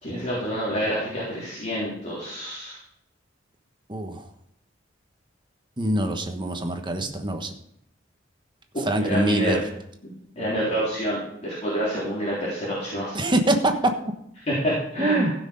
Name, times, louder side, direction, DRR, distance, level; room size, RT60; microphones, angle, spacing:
voice 1, 0.0-2.8 9.0-9.6 10.4-13.2 14.5-15.3, equal, 40° left, -8 dB, 3.9 m, -27 dB
voice 2, 3.9-4.2 5.8-7.5 8.9-9.6 13.1-13.7 15.0-15.3, right 1 dB, 25° right, 5 dB, 1.2 m, -24 dB
15.5 x 6.4 x 5.2 m, 0.74 s
head